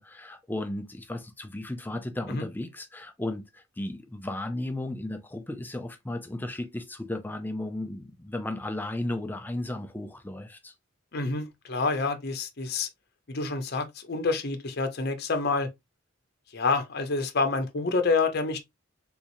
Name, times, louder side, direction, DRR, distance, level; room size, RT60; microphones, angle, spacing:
voice 1, 0.0-10.7, left 1 dB, 10° left, 0.4 m, -35 dB
voice 2, 11.1-12.9 13.3-15.7 16.5-18.6, left 3 dB, 50° left, 0.7 m, -28 dB
3.6 x 2.9 x 2.5 m
head